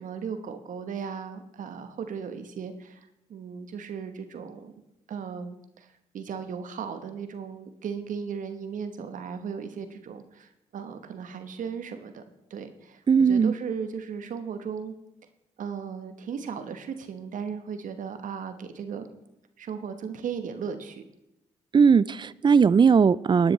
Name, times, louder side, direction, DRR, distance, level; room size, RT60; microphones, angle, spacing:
voice 1, 0.0-4.7 5.1-12.2 12.5-14.9 15.6-19.1 19.6-21.0, right 6 dB, 60° right, 8 dB, 1.2 m, -36 dB
voice 2, 13.1-13.5 21.7-23.5, right 6 dB, 30° right, 20 dB, 0.4 m, -19 dB
17.5 x 10.0 x 3.3 m, 0.88 s
hypercardioid pair, 45°, 15 cm